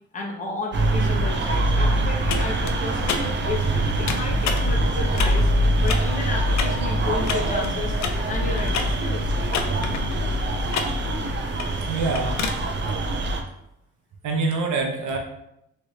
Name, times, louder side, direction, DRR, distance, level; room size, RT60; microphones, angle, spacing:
voice 1, 0.1-5.5 5.8-8.0 8.3-9.3, left 3 dB, 25° left, -3 dB, 0.9 m, -32 dB
sound 1, 0.7-13.4, right 1 dB, 40° right, 0.5 m, -24 dB
sound 2, 2.3-12.5, left 5 dB, 65° left, 0.5 m, -32 dB
voice 2, 11.9-12.4 14.2-15.2, right 3 dB, 80° right, 1 dB, 0.8 m, -25 dB
3.2 x 2.6 x 3.2 m, 0.82 s
cardioid pair, 90°, 30 cm